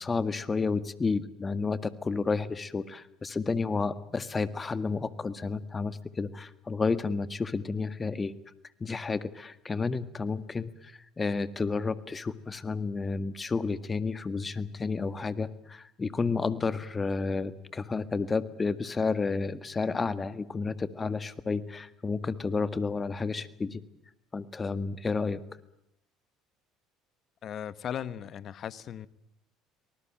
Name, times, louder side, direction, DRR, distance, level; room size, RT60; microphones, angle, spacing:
voice 1, 0.0-8.3 8.8-23.8 24.3-25.4, left 4 dB, 25° left, 1.8 m, -31 dB
voice 2, 27.4-29.1, left 9 dB, 50° left, 1.3 m, -37 dB
24.5 x 19.5 x 9.0 m
hypercardioid pair, 70°, 0 cm